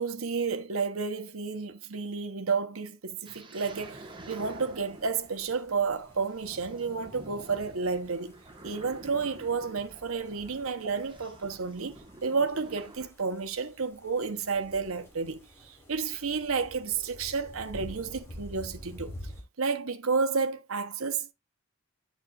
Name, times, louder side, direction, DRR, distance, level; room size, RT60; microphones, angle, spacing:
voice 1, 0.0-8.4 8.6-19.1 19.6-21.3, right 5 dB, 85° right, 0.9 m, -31 dB
sound 1, 3.2-13.1, right 2 dB, 25° right, 1.2 m, -49 dB
sound 2, 3.7-19.4, equal, 10° left, 3.0 m, -50 dB
8.2 x 7.4 x 2.4 m
head